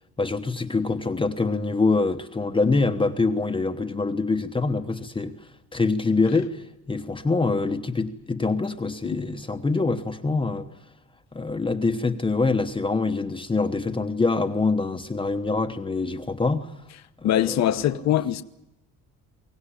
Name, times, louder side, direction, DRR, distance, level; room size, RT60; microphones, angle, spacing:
voice 1, 0.2-5.3 5.7-10.7 11.3-16.7 17.2-17.7, left 3 dB, 15° left, 1.0 m, -25 dB
voice 2, 17.2-18.4, left 11 dB, 50° left, 1.0 m, -23 dB
23.0 x 18.0 x 10.0 m
cardioid pair, 150°, 34 cm